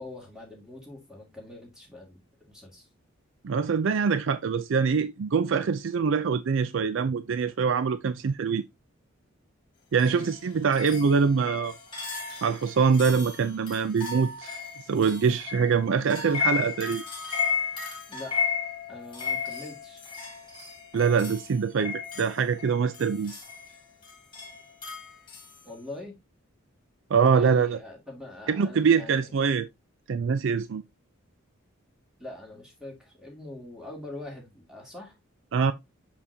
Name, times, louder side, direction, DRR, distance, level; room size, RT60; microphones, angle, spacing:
voice 1, 0.0-2.9 10.0-10.3 18.1-18.4 18.9-20.0 25.6-26.1 27.3-29.3 32.2-35.2, left 2 dB, 5° right, 2.2 m, -43 dB
voice 2, 3.4-8.6 9.9-11.7 12.4-14.5 14.9-17.0 20.9-23.4 27.1-27.8 28.5-29.7 30.1-30.8 35.5-35.7, right 5 dB, 60° right, 0.4 m, -24 dB
sound 1, 10.0-25.6, left 6 dB, 25° left, 2.1 m, -34 dB
6.4 x 5.7 x 2.7 m
head